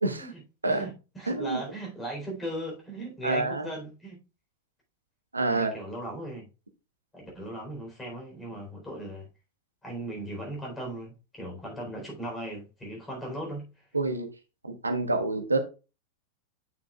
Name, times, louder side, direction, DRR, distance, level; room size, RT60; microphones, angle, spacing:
voice 1, 0.0-0.3 0.6-0.8 1.3-1.6 3.2-3.7 5.3-5.7 13.9-14.3 14.6-15.6, right 2 dB, 80° right, 1.0 m, -27 dB
voice 2, 0.7-4.2 5.5-6.5 7.1-9.3 9.8-13.7, right 1 dB, 10° left, 3.9 m, -38 dB
9.0 x 6.1 x 2.4 m
figure-of-eight pair, 90°, 0 cm